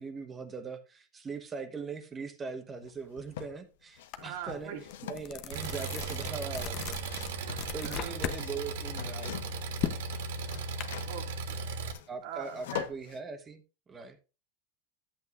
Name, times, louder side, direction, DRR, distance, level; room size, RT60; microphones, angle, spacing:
voice 1, 0.0-4.7 5.1-7.0 7.7-9.6 12.1-14.2, right 4 dB, 20° right, 1.1 m, -41 dB
sound 1, 2.8-3.6 3.9-9.7 10.0-13.2, left 10 dB, 85° left, 0.8 m, -44 dB
sound 2, 4.1-4.3 4.7-8.4 8.8-10.8, left 10 dB, 40° left, 0.8 m, -38 dB
voice 2, 4.2-4.8 7.4-8.1 11.0-11.6 12.2-12.9, right 8 dB, 60° right, 2.0 m, -42 dB
Engine, 5.5-11.9, right 4 dB, 85° right, 1.4 m, -37 dB
11.5 x 8.3 x 2.5 m
supercardioid pair, 155°, 0 cm